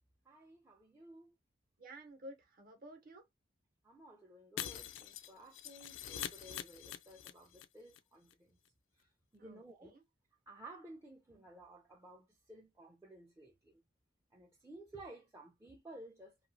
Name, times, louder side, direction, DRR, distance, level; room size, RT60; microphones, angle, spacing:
voice 1, 0.2-1.4 3.8-8.6 8.9-10.0 10.5-13.8 14.3-16.5, right 2 dB, 15° right, 0.4 m, -55 dB
voice 2, 1.8-3.3 9.4-10.0, right 1 dB, 50° right, 0.9 m, -53 dB
Shatter, 4.6-7.6 7.9-8.0 8.3-8.4, left 10 dB, 75° left, 0.3 m, -44 dB
2.9 x 2.3 x 2.5 m
head